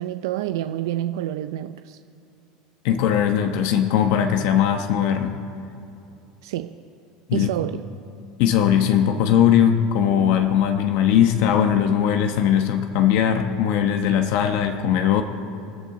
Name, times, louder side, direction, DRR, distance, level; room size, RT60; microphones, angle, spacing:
voice 1, 0.0-2.0 6.4-6.7 7.3-7.8, right 13 dB, 90° right, 9 dB, 0.5 m, -28 dB
voice 2, 2.8-5.4 7.3-7.5 8.4-15.2, left 9 dB, 70° left, 6 dB, 1.0 m, -19 dB
27.5 x 11.5 x 3.8 m, 2.8 s
supercardioid pair, 135°, 2 cm